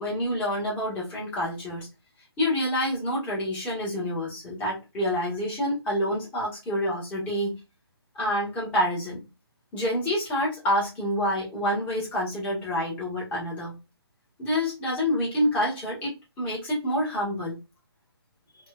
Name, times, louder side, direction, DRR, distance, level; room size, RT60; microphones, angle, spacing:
voice 1, 0.0-1.9 2.4-7.6 8.1-9.2 9.7-13.8 14.4-17.6, equal, 10° left, 1.1 m, -27 dB
4.2 x 2.2 x 2.3 m
hypercardioid pair, 160°, 13 cm